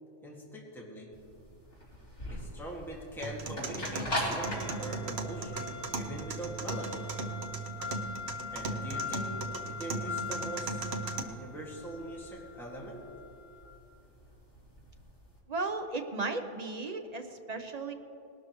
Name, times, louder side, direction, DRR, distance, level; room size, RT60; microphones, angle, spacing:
voice 1, 0.2-1.1 2.3-7.1 8.5-10.9 11.3-13.1, equal, ahead, -4 dB, 1.9 m, -42 dB
sound 1, 1.1-15.3, left 2 dB, 45° left, 3.4 m, -40 dB
sound 2, 3.2-11.2, right 4 dB, 60° right, 1.1 m, -38 dB
voice 2, 15.5-17.9, right 3 dB, 35° right, 6 dB, 0.8 m, -35 dB
19.5 x 12.5 x 3.1 m, 2.7 s
omnidirectional pair, 1.3 m